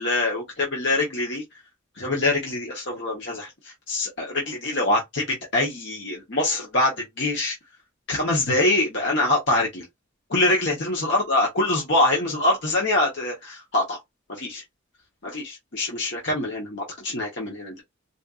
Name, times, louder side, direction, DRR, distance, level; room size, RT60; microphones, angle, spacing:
voice 1, 0.0-1.4 2.0-7.6 8.1-9.8 10.3-14.0 14.3-14.6 15.2-17.8, left 2 dB, 55° left, 1.0 m, -24 dB
4.1 x 2.5 x 2.4 m
head